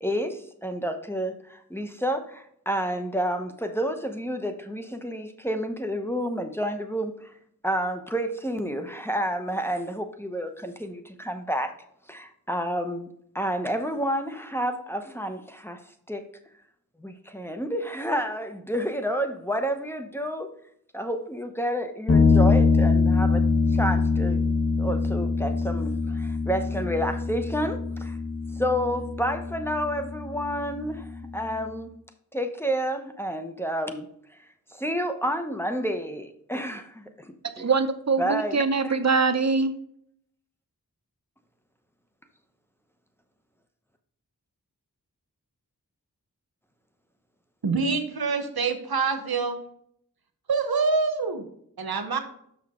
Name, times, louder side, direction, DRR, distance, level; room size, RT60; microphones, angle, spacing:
voice 1, 0.0-7.3 7.6-11.7 12.1-13.1 13.3-15.8 16.1-16.2 17.0-20.5 20.9-24.4 24.8-28.2 28.6-31.9 32.3-34.1 34.8-37.7 38.2-38.9, equal, 5° left, 0.9 m, -30 dB
sound 1, 22.1-31.6, left 4 dB, 65° left, 1.4 m, -24 dB
voice 2, 37.6-39.7, right 4 dB, 45° right, 0.7 m, -23 dB
voice 3, 47.6-49.6 50.5-51.4 51.8-52.2, right 4 dB, 90° right, 1.0 m, -25 dB
6.1 x 5.9 x 3.6 m
wide cardioid pair, 45°, 36 cm